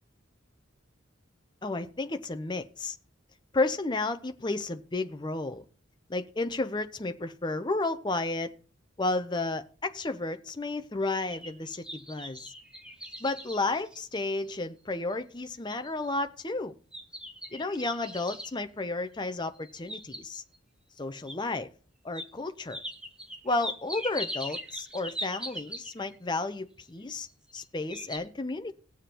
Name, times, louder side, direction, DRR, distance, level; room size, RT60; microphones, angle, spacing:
voice 1, 1.6-3.0 3.5-5.6 6.1-8.5 9.0-12.5 13.2-16.7 17.5-20.4 21.0-21.7 22.0-22.8 23.4-27.3 27.5-28.7, left 2 dB, 20° left, 0.6 m, -32 dB
sound 1, 11.0-14.6 15.1-15.2 15.7-16.1 16.9-18.6 19.6-20.6 21.3-21.4 22.1-22.3 22.7-26.2 27.2-27.6 27.9-28.2, equal, 5° right, 0.9 m, -40 dB
19.5 x 7.2 x 2.9 m
head